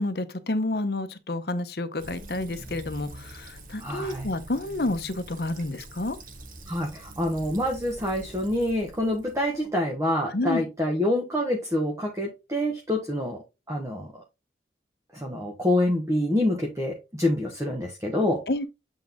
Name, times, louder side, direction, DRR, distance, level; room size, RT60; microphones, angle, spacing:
voice 1, 0.0-6.2 10.3-10.6 18.5-18.7, left 2 dB, 60° left, 0.9 m, -29 dB
Fill (with liquid), 2.0-9.7, right 1 dB, 50° right, 1.4 m, -44 dB
voice 2, 3.8-4.3 6.7-14.2 15.1-18.4, left 1 dB, 15° right, 1.2 m, -27 dB
8.2 x 3.7 x 3.6 m
head